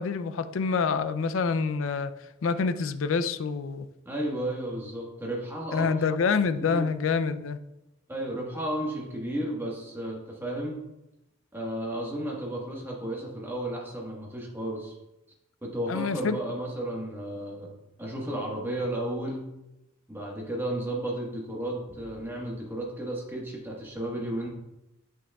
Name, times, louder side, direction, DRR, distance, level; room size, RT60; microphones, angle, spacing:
voice 1, 0.0-2.1 2.4-3.9 5.7-7.6 15.9-16.4, left 5 dB, 75° left, 12 dB, 0.4 m, -27 dB
voice 2, 4.0-5.9 6.5-6.9 8.1-10.8 11.5-14.9 15.6-17.7 18.0-19.4 20.1-24.5, right 1 dB, 10° right, -2 dB, 1.3 m, -33 dB
8.3 x 6.1 x 2.3 m, 0.90 s
head